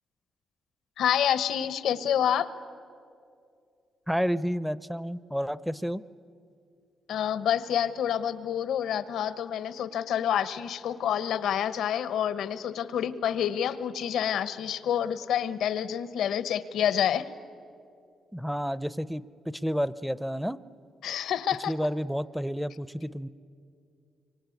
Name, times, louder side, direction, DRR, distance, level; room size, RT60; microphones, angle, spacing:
voice 1, 1.0-2.5 7.1-17.3 21.0-21.7, left 9 dB, 90° left, 14 dB, 1.0 m, -28 dB
voice 2, 4.1-6.0 18.3-20.6 21.7-23.3, equal, ahead, 17 dB, 0.6 m, -30 dB
25.5 x 24.0 x 9.3 m, 2.4 s
cardioid pair, 110°, 0 cm